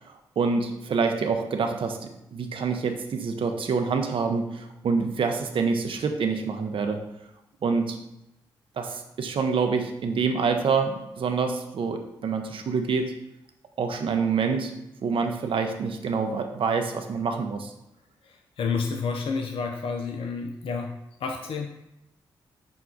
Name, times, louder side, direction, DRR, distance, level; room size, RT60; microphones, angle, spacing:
voice 1, 0.4-7.0 7.6-8.0 8.8-13.2 13.8-17.7, right 5 dB, 60° right, 5 dB, 0.6 m, -26 dB
voice 2, 18.2-21.7, left 5 dB, 65° left, 3 dB, 0.4 m, -30 dB
5.9 x 2.3 x 3.8 m, 0.88 s
supercardioid pair, 45°, 10 cm